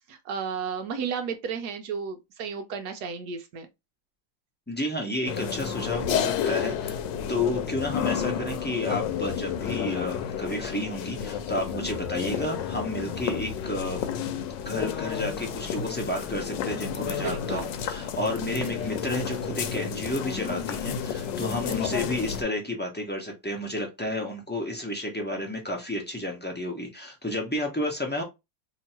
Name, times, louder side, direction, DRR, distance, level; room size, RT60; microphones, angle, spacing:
voice 1, 0.1-3.7 12.1-12.5 17.2-17.7 18.6-18.9 21.8-22.1, right 6 dB, 70° right, 1.1 m, -34 dB
voice 2, 4.7-7.0 7.3-14.1 14.6-28.2, left 1 dB, 15° left, 0.4 m, -31 dB
sound 1, 5.3-22.4, left 8 dB, 75° left, 1.2 m, -31 dB
3.0 x 2.8 x 4.3 m
omnidirectional pair, 2.1 m